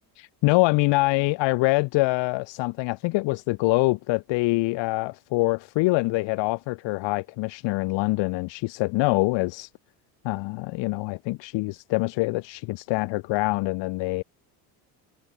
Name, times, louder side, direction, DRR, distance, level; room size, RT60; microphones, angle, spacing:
voice 1, 0.2-9.7 10.2-14.2, left 23 dB, 60° left, 0.7 m, -25 dB
supercardioid pair, 85°, 50 cm